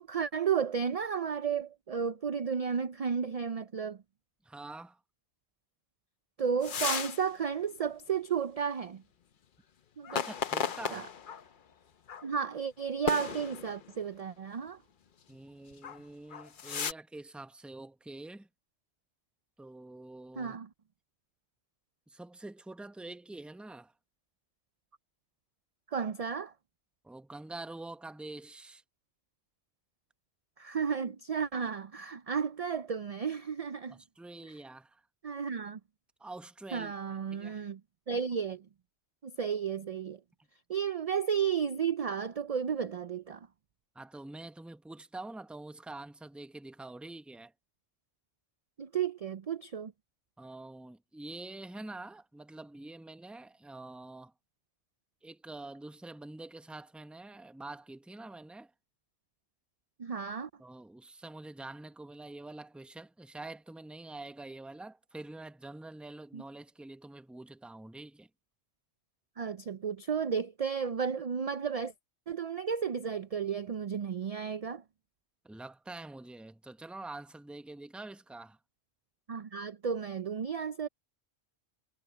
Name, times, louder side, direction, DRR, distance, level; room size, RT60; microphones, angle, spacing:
voice 1, 0.0-4.0 6.4-9.0 10.0-10.3 10.9-11.1 12.2-14.8 20.4-20.7 25.9-26.5 30.6-34.0 35.2-35.8 36.7-37.8 38.1-38.7 39.2-40.2 40.7-43.5 48.8-49.9 60.0-60.5 66.3-66.4 69.4-71.9 72.3-74.8 79.3-80.9, right 7 dB, 50° right, 0.5 m, -33 dB
voice 2, 4.4-5.0 10.1-11.1 15.3-18.5 19.6-20.6 22.1-23.9 27.0-28.8 33.9-35.0 36.2-37.6 43.9-47.5 50.4-54.3 55.2-58.7 60.6-68.3 75.4-78.6, right 2 dB, ahead, 0.7 m, -46 dB
sound 1, 6.6-7.2 7.6-7.7 10.0-11.4 12.1-12.3 13.1-13.9 15.7-16.0 16.3-16.9, left 7 dB, 50° left, 0.9 m, -34 dB
omnidirectional pair, 1.2 m